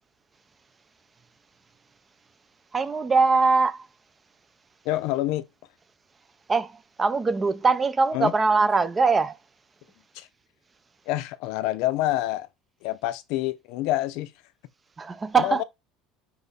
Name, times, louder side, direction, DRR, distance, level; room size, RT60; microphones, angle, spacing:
voice 1, 2.7-3.9 6.5-9.4 15.0-15.6, right 4 dB, 15° right, 0.5 m, -22 dB
voice 2, 4.8-5.5 8.1-8.3 10.1-10.3 11.1-12.5 12.8-14.3 15.4-15.6, left 15 dB, 60° left, 0.6 m, -27 dB
6.1 x 3.0 x 5.5 m
cardioid pair, 175°, 0 cm